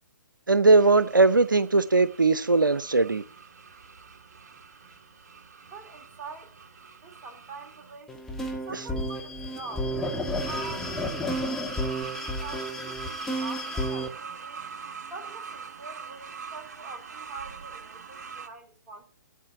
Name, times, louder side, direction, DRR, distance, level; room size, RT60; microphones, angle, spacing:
voice 1, 0.5-3.2, right 3 dB, 85° right, 0.6 m, -20 dB
sound 1, 0.8-8.0 10.4-18.5, right 6 dB, 55° right, 1.4 m, -43 dB
voice 2, 5.7-6.6 7.0-8.2 8.6-9.9 10.4-11.0 11.7-14.7 15.1-19.0, right 3 dB, 20° right, 2.9 m, -44 dB
sound 2, 8.1-14.1, equal, 5° left, 1.6 m, -31 dB
8.3 x 8.0 x 8.6 m
figure-of-eight pair, 130°, 10 cm